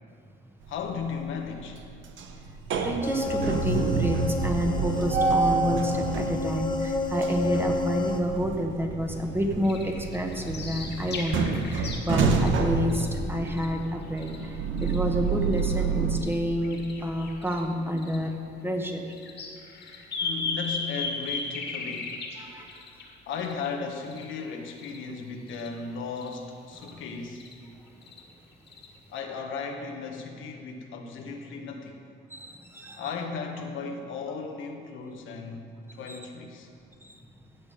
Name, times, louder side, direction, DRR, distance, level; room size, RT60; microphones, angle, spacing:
voice 1, 0.7-1.8 20.2-22.2 23.3-27.4 29.1-32.0 33.0-35.7 35.9-36.7, left 5 dB, 80° left, 3 dB, 1.3 m, -36 dB
sound 1, 0.7-1.2 1.6-16.2, right 4 dB, 75° right, 1.0 m, -29 dB
voice 2, 2.8-19.1 22.4-22.8 26.8-27.0 32.3-33.0 36.1-36.2 37.0-37.2, equal, 10° right, 3 dB, 1.3 m, -29 dB
sound 2, 3.0-8.2, left 3 dB, 20° left, 1.0 m, -30 dB
sound 3, 9.6-12.0 12.2-14.5 14.8-15.7 16.2-16.4 16.6-17.6 18.0-18.2 19.1-24.2 24.8-25.0 25.5-25.7 26.1-26.4 26.7-26.9 27.2-27.5 28.0-28.2 28.7-28.9, left 3 dB, 60° left, 2.0 m, -36 dB
16.0 x 7.2 x 5.2 m, 2.4 s
cardioid pair, 90°, 20 cm